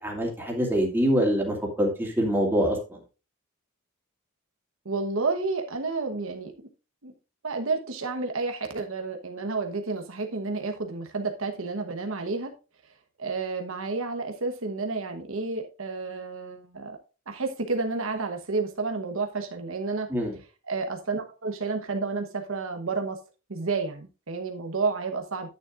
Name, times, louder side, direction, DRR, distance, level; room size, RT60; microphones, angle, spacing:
voice 1, 0.0-3.0 20.1-20.3, equal, 10° right, -1 dB, 2.6 m, -25 dB
voice 2, 4.8-6.7 7.0-7.1 7.4-12.5 13.2-17.0 17.3-20.1 20.7-23.2 23.5-25.5, right 3 dB, 70° right, 5 dB, 1.1 m, -30 dB
9.5 x 9.4 x 2.5 m, 0.31 s
head